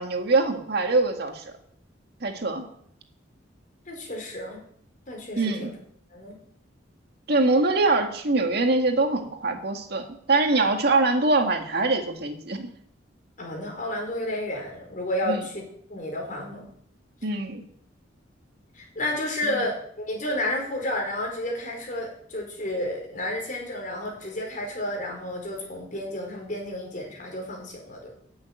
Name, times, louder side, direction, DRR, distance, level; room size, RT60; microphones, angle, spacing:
voice 1, 0.0-1.5 2.2-2.7 5.4-5.7 7.3-12.7 15.3-15.4 17.2-17.6, right 3 dB, 55° right, 4 dB, 2.0 m, -23 dB
voice 2, 3.9-4.6 5.1-5.7 6.1-6.3 13.4-16.7 18.7-28.1, left 1 dB, 45° left, 1 dB, 5.0 m, -31 dB
11.0 x 9.3 x 9.2 m, 0.67 s
head